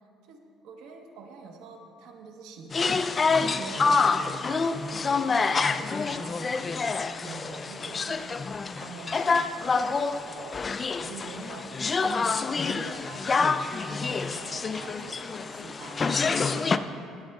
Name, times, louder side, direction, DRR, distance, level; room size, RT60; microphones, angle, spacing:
voice 1, 0.0-10.7 11.0-13.5 13.9-17.1, right 4 dB, 80° right, 3 dB, 1.1 m, -46 dB
sound 1, 2.7-16.8, left 4 dB, 25° left, 0.3 m, -27 dB
20.5 x 8.7 x 2.3 m, 2.4 s
cardioid pair, 125°, 0 cm